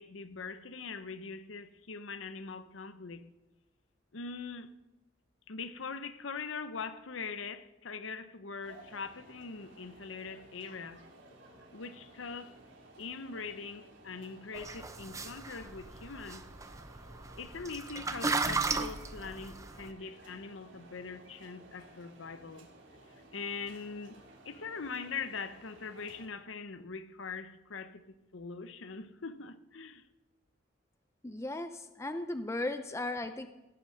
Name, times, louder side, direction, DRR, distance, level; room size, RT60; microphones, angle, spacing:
voice 1, 0.0-3.2 4.1-4.7 5.5-11.0 11.7-12.6 13.0-16.4 17.4-22.7 23.3-24.2 24.4-30.0, left 4 dB, 90° left, 0.8 m, -42 dB
sound 1, 8.6-26.3, right 2 dB, 70° right, 3.4 m, -56 dB
sound 2, 14.5-19.9, right 3 dB, 15° right, 0.7 m, -36 dB
voice 2, 31.2-33.5, left 2 dB, 15° left, 0.5 m, -36 dB
17.0 x 9.8 x 6.5 m
head